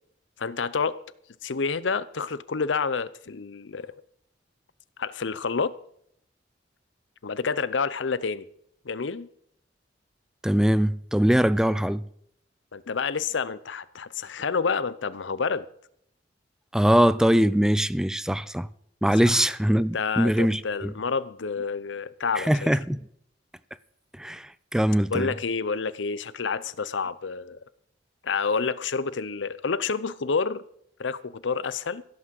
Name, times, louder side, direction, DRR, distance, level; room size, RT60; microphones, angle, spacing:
voice 1, 0.4-1.0 1.4-3.9 5.0-5.7 7.2-8.5 8.8-9.3 12.7-15.7 19.3-19.5 19.9-22.7 25.1-27.6 28.2-30.6 31.0-32.0, left 5 dB, 85° left, 0.7 m, -28 dB
voice 2, 10.4-12.0 16.7-18.7 19.0-20.9 22.4-23.0 24.2-25.3, equal, 5° right, 0.4 m, -22 dB
16.0 x 6.1 x 7.6 m
head